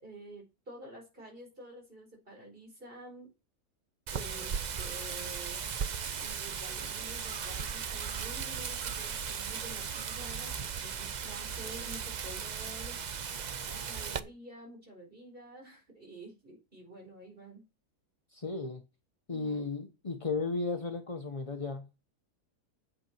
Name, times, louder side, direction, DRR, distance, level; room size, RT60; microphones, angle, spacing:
voice 1, 0.0-3.3 4.1-5.6 6.2-13.0 13.7-17.6 19.3-19.6, right 1 dB, 35° right, 4.8 m, -49 dB
Wind, 4.1-14.2, right 7 dB, 70° right, 0.4 m, -37 dB
voice 2, 18.3-18.8 19.3-21.9, left 3 dB, 30° left, 0.7 m, -34 dB
8.7 x 7.9 x 4.5 m
omnidirectional pair, 1.6 m